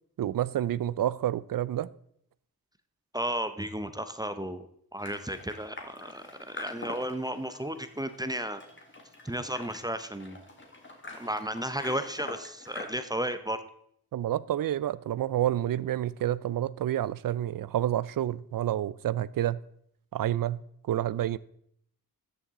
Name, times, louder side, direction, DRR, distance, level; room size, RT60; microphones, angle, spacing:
voice 1, 0.2-1.9 14.1-19.6 20.1-20.6 20.9-21.4, right 12 dB, 65° right, 0.5 m, -29 dB
voice 2, 3.1-8.6 9.2-10.4 11.2-13.6, right 1 dB, 10° right, 0.7 m, -34 dB
sound 1, 5.0-12.9, left 2 dB, 30° left, 1.9 m, -45 dB
12.5 x 7.0 x 3.7 m
cardioid pair, 65°, 36 cm